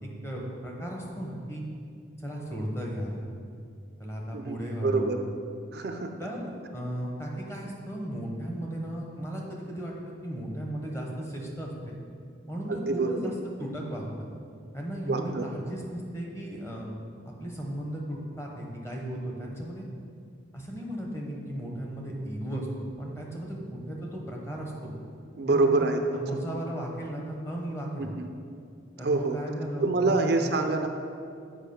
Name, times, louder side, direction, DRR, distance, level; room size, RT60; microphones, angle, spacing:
voice 1, 0.0-1.6 2.2-3.2 4.0-5.3 6.2-9.9 10.2-12.0 12.5-13.3 13.6-14.3 14.7-16.9 17.2-19.9 20.5-24.9 25.5-25.7 26.1-28.1 29.0-30.6, equal, 15° left, -1 dB, 1.0 m, -35 dB
voice 2, 4.3-5.2 5.7-6.1 12.8-13.3 15.1-15.5 25.4-26.0 28.0-28.3 29.0-29.4 29.8-30.9, right 3 dB, 55° right, 5 dB, 0.4 m, -26 dB
7.3 x 4.8 x 5.5 m, 2.4 s
head